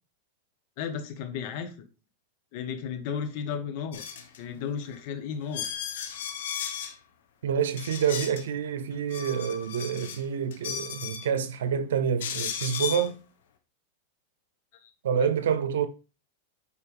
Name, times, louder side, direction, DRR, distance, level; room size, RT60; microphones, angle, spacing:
voice 1, 0.8-1.7 2.5-4.0 4.4-5.7 14.8-14.9, left 7 dB, 55° left, 1.6 m, -34 dB
sound 1, 3.9-4.4 4.9-5.0 5.5-6.9 7.8-8.4 8.9-10.2 10.5-11.3 12.2-13.1, left 8 dB, 80° left, 1.4 m, -35 dB
voice 2, 7.4-13.2 15.0-15.9, right 7 dB, 85° right, 0.8 m, -27 dB
8.6 x 4.5 x 3.6 m
hypercardioid pair, 125°, 0 cm